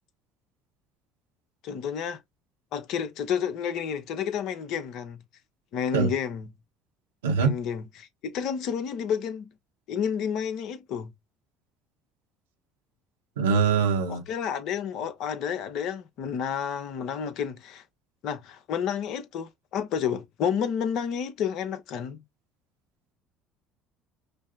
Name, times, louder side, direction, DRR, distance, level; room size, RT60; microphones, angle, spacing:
voice 1, 1.6-2.2 2.7-5.2 5.7-6.5 7.4-9.5 9.9-11.1 14.1-17.8 18.2-22.2, left 7 dB, 65° left, 0.7 m, -30 dB
voice 2, 7.2-7.6 13.4-14.2, right 5 dB, 85° right, 0.9 m, -23 dB
5.2 x 2.0 x 2.6 m
hypercardioid pair, 65°, 0 cm